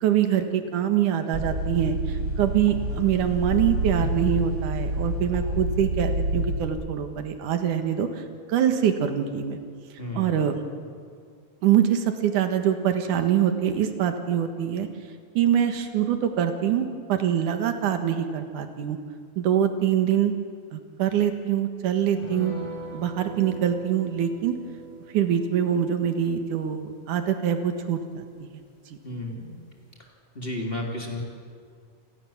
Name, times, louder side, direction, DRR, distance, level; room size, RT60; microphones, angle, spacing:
voice 1, 0.0-8.2 8.5-9.6 10.1-10.6 11.6-14.9 15.3-19.0 19.4-20.3 20.7-22.5 22.9-24.6 25.1-28.5, right 9 dB, 85° right, 7 dB, 3.1 m, -24 dB
sound 1, 1.3-6.7, right 1 dB, 30° right, 3.1 m, -28 dB
voice 2, 10.0-10.3 29.0-29.6 30.3-31.2, left 1 dB, 20° left, 0 dB, 3.2 m, -32 dB
sound 2, 22.2-29.0 29.3-29.4 29.7-29.9, right 1 dB, 40° left, 6.5 m, -42 dB
28.0 x 20.5 x 7.3 m, 2.1 s
omnidirectional pair, 3.5 m